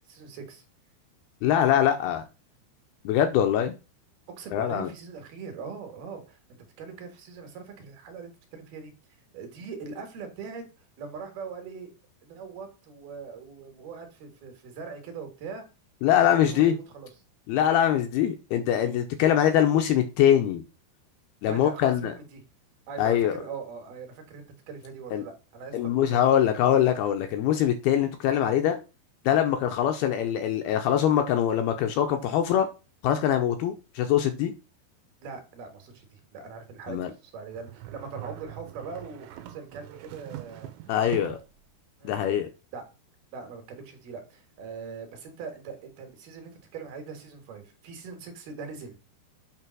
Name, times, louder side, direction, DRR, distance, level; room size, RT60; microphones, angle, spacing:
voice 1, 0.1-0.6 4.3-8.9 9.3-10.6 11.0-11.9 12.2-15.6 16.4-17.1 21.5-22.4 22.9-25.8 26.1-26.2 35.2-40.7 42.0-42.2 42.7-42.9 43.3-49.0, right 5 dB, 65° right, 3.0 m, -41 dB
voice 2, 1.4-2.3 3.1-3.7 4.5-4.9 16.0-16.7 17.5-20.6 21.4-22.1 23.0-23.4 25.1-25.2 25.7-28.8 29.3-32.7 33.0-34.5 36.9-37.1 40.9-41.4 42.0-42.5, left 10 dB, 80° left, 2.3 m, -23 dB
sound 1, 37.5-41.6, right 14 dB, 85° right, 3.0 m, -43 dB
8.9 x 3.4 x 6.1 m
omnidirectional pair, 5.2 m